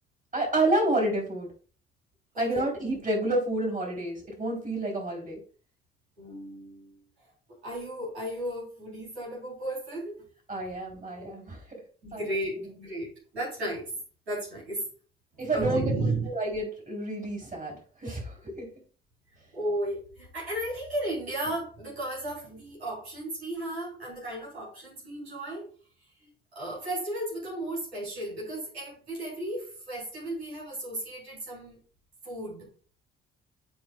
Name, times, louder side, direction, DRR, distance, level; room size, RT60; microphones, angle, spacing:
voice 1, 0.3-1.5 2.4-5.4 10.5-11.8 12.1-12.3 15.4-16.0 16.3-18.7, right 2 dB, 25° right, 0 dB, 3.9 m, -29 dB
voice 2, 6.2-7.1 7.6-10.2 12.0-13.9 14.3-14.9 15.4-16.3 19.5-25.7 26.2-31.8 32.2-32.7, right 1 dB, 85° right, -6 dB, 3.9 m, -34 dB
12.5 x 4.7 x 2.4 m, 0.40 s
figure-of-eight pair, 45°, 31 cm